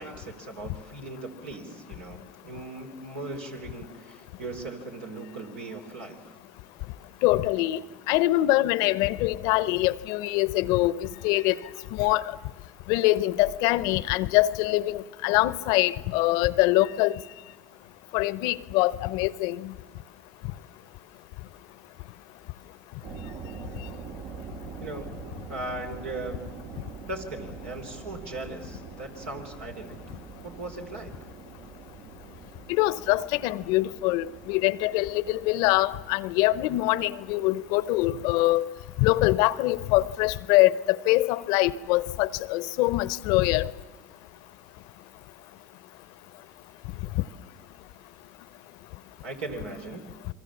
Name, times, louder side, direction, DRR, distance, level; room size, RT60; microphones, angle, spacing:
voice 1, 0.0-6.4 24.8-25.2 25.5-26.4 27.1-30.0 30.4-31.1 49.2-50.1, right 2 dB, 85° right, 3.3 m, -38 dB
voice 2, 7.2-7.8 8.1-11.6 11.9-12.2 12.9-17.1 18.1-19.7 32.7-38.7 39.0-43.6, left 17 dB, 65° left, 0.7 m, -24 dB
sound 1, 23.0-38.2, right 5 dB, 65° right, 2.2 m, -44 dB
27.5 x 23.0 x 7.2 m
hypercardioid pair, 80°, 7 cm